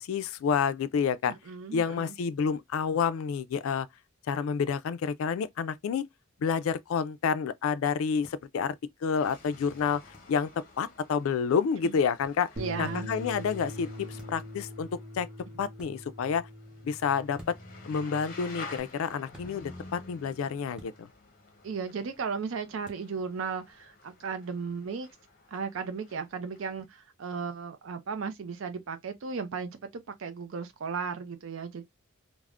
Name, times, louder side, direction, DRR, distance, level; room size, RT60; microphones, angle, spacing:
voice 1, 0.0-1.3 1.7-3.9 4.3-6.0 6.4-8.8 9.0-10.5 10.8-12.5 12.8-14.9 15.1-15.3 15.6-16.5 16.8-17.6 17.8-21.1, left 6 dB, 80° left, 0.3 m, -29 dB
voice 2, 1.3-2.1 11.8-11.9 12.6-13.1 21.6-25.1 25.5-31.8, right 5 dB, 70° right, 0.4 m, -35 dB
sound 1, 8.2-8.4 10.1-10.3 12.2-12.4 14.2-14.5 15.7-15.9 17.3-17.8 19.3-19.5 20.7-21.0 22.8-23.1, equal, 5° right, 0.6 m, -51 dB
sound 2, 9.1-26.9, left 3 dB, 40° left, 0.7 m, -50 dB
Bass guitar, 12.6-18.8, left 1 dB, 40° right, 0.9 m, -42 dB
3.4 x 2.0 x 2.4 m
head